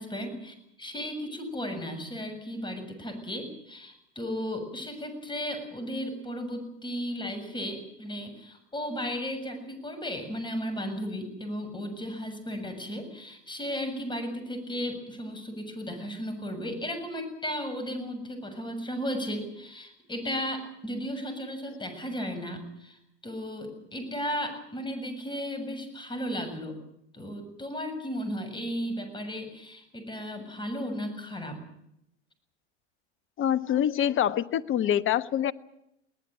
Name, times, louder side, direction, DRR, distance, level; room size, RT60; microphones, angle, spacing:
voice 1, 0.0-26.8 27.1-31.6, equal, 15° left, 8 dB, 7.0 m, -35 dB
voice 2, 33.4-35.5, left 10 dB, 35° left, 16 dB, 1.1 m, -25 dB
22.0 x 18.5 x 9.0 m, 0.80 s
hypercardioid pair, 85°, 35 cm